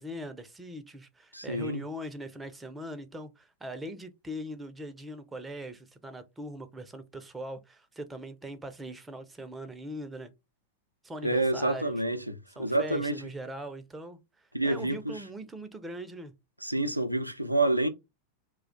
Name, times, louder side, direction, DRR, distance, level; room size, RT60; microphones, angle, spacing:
voice 1, 0.0-10.3 11.0-12.0 12.6-16.3, right 1 dB, 10° right, 0.5 m, -41 dB
voice 2, 1.3-1.8 11.2-13.2 14.5-15.2 16.6-17.9, right 2 dB, 90° right, 0.4 m, -28 dB
2.3 x 2.2 x 3.8 m
figure-of-eight pair, 90°, 0 cm